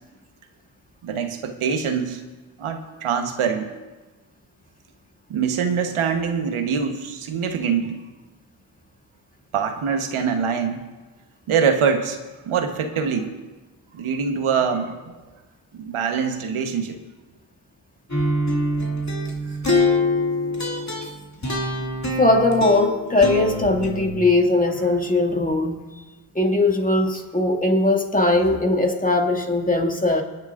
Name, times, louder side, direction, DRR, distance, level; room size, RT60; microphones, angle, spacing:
voice 1, 1.0-2.2 2.6-3.7 5.3-8.0 9.5-10.8 11.5-12.2 12.5-13.3 13.9-15.1 15.7-17.0, right 6 dB, 75° right, 6 dB, 1.3 m, -24 dB
sound 1, 18.1-24.2, left 1 dB, 35° left, 2.4 m, -24 dB
voice 2, 22.2-25.8 26.3-30.2, left 2 dB, 15° left, 1 dB, 2.1 m, -20 dB
24.0 x 9.4 x 2.5 m, 1.2 s
supercardioid pair, 45°, 50 cm